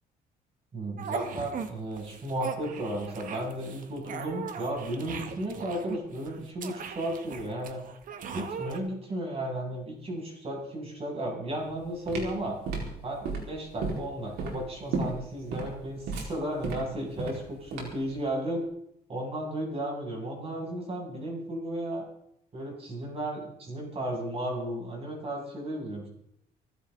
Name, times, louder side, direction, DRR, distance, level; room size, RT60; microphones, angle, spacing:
voice 1, 0.7-7.8 8.3-12.6 13.0-18.6 19.1-22.0 22.5-26.1, right 1 dB, 35° right, -1 dB, 7.5 m, -34 dB
sound 1, 1.0-1.7 2.0-8.8, right 6 dB, 55° right, 1.8 m, -39 dB
sound 2, 11.6-18.1, right 3 dB, 75° right, 4.6 m, -34 dB
25.0 x 12.0 x 4.0 m, 0.76 s
cardioid pair, 110°, 17 cm